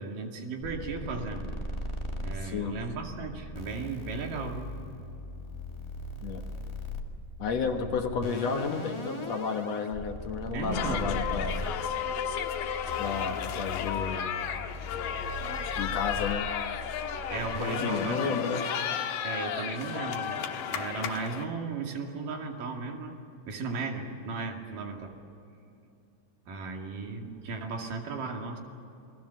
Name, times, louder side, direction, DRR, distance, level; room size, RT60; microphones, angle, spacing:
voice 1, 0.0-1.5 2.2-4.7 7.7-7.9 10.5-11.1 17.3-18.4 19.2-20.4 20.7-23.2 23.5-25.2 26.5-28.6, right 4 dB, 80° right, 2 dB, 4.0 m, -36 dB
sound 1, 0.6-19.2, left 1 dB, 20° left, 0.8 m, -39 dB
voice 2, 2.4-2.8 6.2-6.4 7.4-11.7 13.0-14.4 15.8-16.5 17.6-18.7, left 6 dB, 60° left, 5 dB, 2.2 m, -32 dB
sound 2, 10.7-21.4, left 8 dB, 85° left, 2.9 m, -33 dB
28.5 x 21.0 x 7.0 m, 2.7 s
omnidirectional pair, 3.8 m